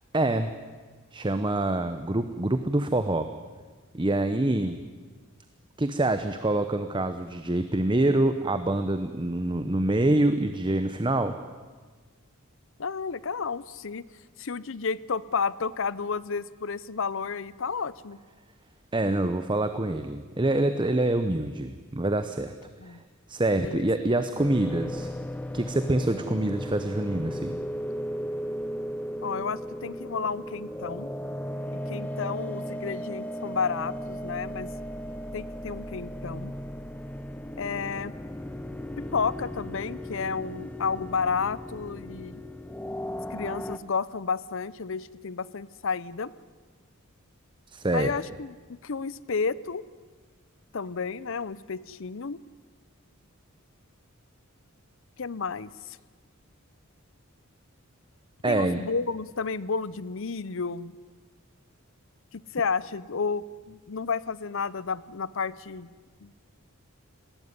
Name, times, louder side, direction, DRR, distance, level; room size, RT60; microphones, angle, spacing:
voice 1, 0.1-0.5 1.1-3.3 3.9-4.8 5.8-11.4 18.9-22.5 22.9-23.0 23.3-25.1 25.5-27.6 47.7-48.1 58.4-58.8, right 2 dB, 20° right, 9 dB, 0.8 m, -26 dB
voice 2, 12.8-14.0 14.4-18.2 22.8-23.0 23.6-23.8 29.2-31.1 31.7-34.7 35.3-36.5 37.6-38.1 39.0-42.4 43.3-46.3 47.9-49.8 50.7-52.4 55.2-56.0 58.5-61.0 62.3-65.9 66.2-66.3, left 5 dB, 60° left, 19 dB, 0.7 m, -31 dB
sound 1, 24.4-43.8, equal, 5° left, 0.6 m, -36 dB
20.0 x 17.5 x 9.7 m, 1.4 s
head